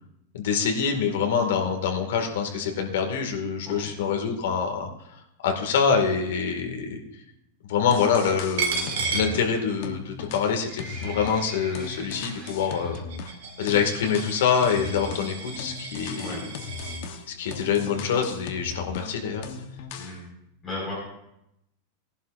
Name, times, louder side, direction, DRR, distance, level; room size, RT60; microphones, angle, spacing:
voice 1, 0.3-4.9 5.4-7.0 7.7-13.0 13.6-16.4 17.3-19.5, left 6 dB, 80° left, 3 dB, 1.9 m, -25 dB
sound 1, 7.6-7.7 7.9-9.5 9.8-13.4 13.7-19.2 19.4-20.2, left 5 dB, 45° left, 1.0 m, -38 dB
Coin (dropping), 8.6-10.1 10.4-17.0, right 5 dB, 75° right, 1.9 m, -34 dB
Livestock farm animals working animals, 10.3-13.0 13.3-13.6 13.9-14.0 14.7-14.8 15.0-15.1 15.3-15.4 16.0-16.2 16.8-16.9 17.1-17.2 17.4-17.5 17.7-17.8 18.3-18.4 18.8-18.9 19.4-19.5, right 3 dB, 20° right, 2.3 m, -44 dB
voice 2, 20.6-20.9, left 2 dB, 15° left, -6 dB, 4.7 m, -36 dB
17.5 x 11.0 x 2.5 m, 0.81 s
supercardioid pair, 180°, 0 cm